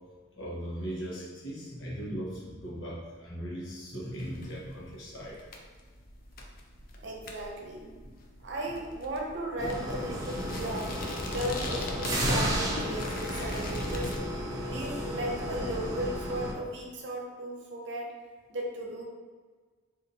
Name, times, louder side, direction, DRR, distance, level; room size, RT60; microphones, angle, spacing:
voice 1, 0.4-5.4 8.0-8.1, equal, 70° left, -5 dB, 1.0 m, -38 dB
sound 1, 4.2-14.2, left 2 dB, 45° left, 0.4 m, -41 dB
voice 2, 7.0-7.9 8.4-10.9 11.2-14.1 14.6-18.1 18.5-19.0, right 1 dB, 60° right, -1 dB, 0.6 m, -36 dB
sound 2, 9.6-16.5, equal, 20° right, 0.4 m, -33 dB
2.7 x 2.5 x 3.9 m, 1.5 s
head